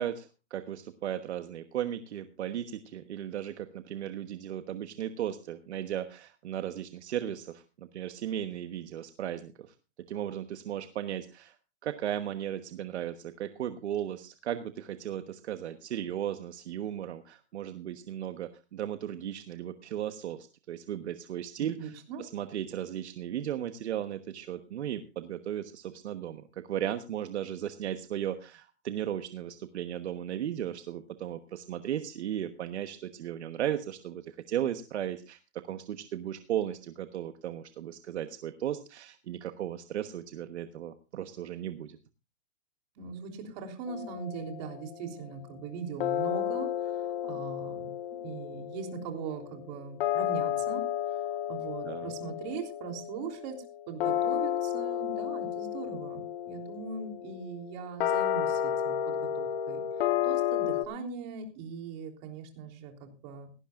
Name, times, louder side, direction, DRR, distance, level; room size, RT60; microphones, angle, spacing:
voice 1, 0.0-9.7 10.1-11.5 11.8-35.4 35.6-42.0 51.8-52.1, right 10 dB, 65° right, 8 dB, 1.3 m, -36 dB
voice 2, 21.6-22.2 43.0-50.8 51.1-59.8 60.2-63.5, right 5 dB, 35° right, 3 dB, 3.5 m, -40 dB
sound 1, 43.9-45.2 46.0-60.8, left 10 dB, 50° left, 1.6 m, -32 dB
18.0 x 15.0 x 2.5 m, 0.31 s
hypercardioid pair, 155°, 35 cm